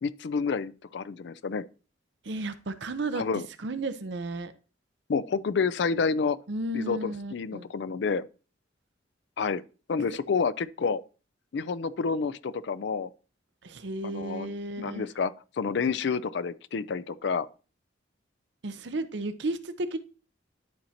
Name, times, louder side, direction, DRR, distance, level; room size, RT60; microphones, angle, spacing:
voice 1, 0.0-1.6 3.2-3.5 5.1-6.4 6.7-8.2 9.4-9.6 9.9-11.0 11.5-13.1 14.0-17.5, left 5 dB, 65° left, 0.4 m, -29 dB
voice 2, 2.2-3.2 3.6-4.5 6.5-7.7 10.1-10.2 13.6-15.1 18.6-20.0, right 2 dB, 65° right, 0.7 m, -33 dB
11.5 x 4.4 x 2.8 m
head